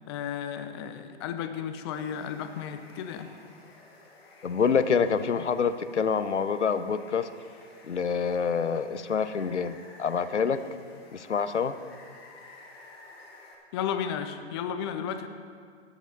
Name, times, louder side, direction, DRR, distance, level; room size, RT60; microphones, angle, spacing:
voice 1, 0.1-3.3 13.7-15.3, left 8 dB, 25° left, 9 dB, 0.5 m, -33 dB
Water, 1.9-13.6, left 2 dB, 60° left, 2.3 m, -53 dB
voice 2, 4.4-7.3 7.9-10.6 11.1-11.7, left 6 dB, 85° left, 12 dB, 0.7 m, -26 dB
13.5 x 10.0 x 4.0 m, 2.1 s
figure-of-eight pair, 120°, 34 cm